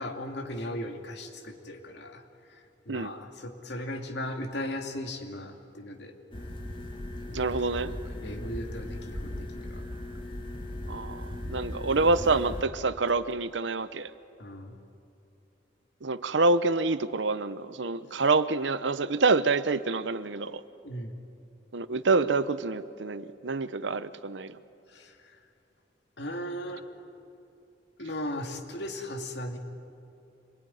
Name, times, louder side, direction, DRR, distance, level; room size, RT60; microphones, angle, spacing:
voice 1, 0.0-2.2 2.5-6.1 7.3-7.5 7.8-9.8 14.4-14.8 18.1-18.2 20.8-21.2 24.9-25.4 26.2-26.9 28.0-29.6, left 1 dB, 65° left, 3 dB, 2.5 m, -37 dB
sound 1, 6.3-12.6, left 1 dB, 30° left, 2.2 m, -38 dB
voice 2, 7.3-7.9 10.9-14.1 16.0-20.6 21.7-24.6, right 3 dB, 85° right, 14 dB, 0.9 m, -27 dB
26.0 x 21.5 x 10.0 m, 2.6 s
head